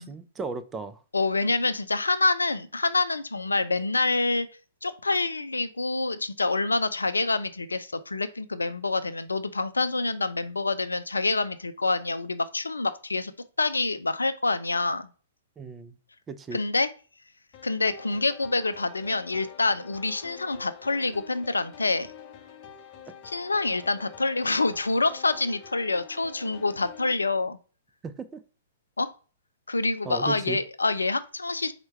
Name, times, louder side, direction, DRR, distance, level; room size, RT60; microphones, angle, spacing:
voice 1, 0.0-1.0 15.6-16.0 16.3-16.6 28.0-28.4 30.0-30.6, right 4 dB, 15° right, 0.4 m, -35 dB
voice 2, 1.1-4.5 4.8-13.3 13.6-15.1 16.5-16.9 17.6-22.1 23.2-27.6 29.0-29.1 29.7-31.7, left 3 dB, 85° left, 0.4 m, -26 dB
sound 1, 17.5-27.1, left 8 dB, 35° left, 0.6 m, -47 dB
4.5 x 2.2 x 4.4 m
figure-of-eight pair, 115°, 0 cm